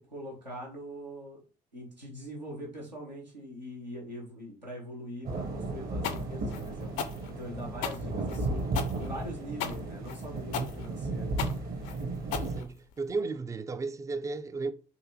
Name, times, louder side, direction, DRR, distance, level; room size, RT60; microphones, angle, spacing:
voice 1, 0.0-1.4 1.7-6.9 7.3-8.7 9.0-11.3, equal, 90° right, 0.9 m, -42 dB
sound 1, 5.2-12.6, right 2 dB, 45° right, 0.9 m, -34 dB
sound 2, 6.0-13.1, left 7 dB, 60° left, 0.5 m, -36 dB
voice 2, 12.4-14.7, right 3 dB, 15° right, 0.3 m, -34 dB
3.9 x 2.6 x 2.9 m
figure-of-eight pair, 45°, 21 cm